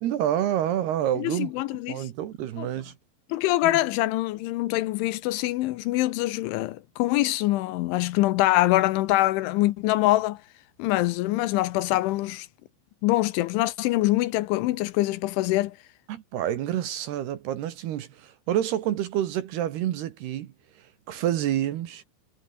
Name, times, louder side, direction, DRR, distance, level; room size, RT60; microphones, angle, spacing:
voice 1, 0.0-1.5 1.9-2.9 3.6-3.7 16.1-20.5 21.1-22.0, right 11 dB, 65° right, 3.0 m, -28 dB
voice 2, 1.2-2.1 2.6-2.7 3.3-10.4 10.8-12.5 13.0-15.8, left 17 dB, 80° left, 3.2 m, -24 dB
omnidirectional pair, 5.7 m